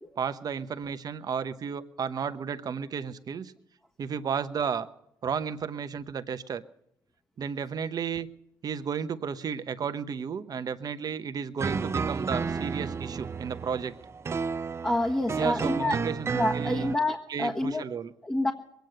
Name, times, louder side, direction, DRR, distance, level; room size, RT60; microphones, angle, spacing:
voice 1, 0.2-3.5 4.0-4.9 5.2-6.6 7.4-8.3 8.6-13.9 15.3-16.3 16.5-16.9 17.3-18.1, right 6 dB, 55° right, 11 dB, 0.9 m, -33 dB
sound 1, 11.6-17.0, right 5 dB, 35° right, 0.5 m, -32 dB
voice 2, 14.8-16.0 16.3-17.9 18.2-18.5, left 1 dB, 15° left, 0 dB, 1.5 m, -28 dB
22.0 x 9.3 x 6.6 m, 0.77 s
cardioid pair, 70°, 8 cm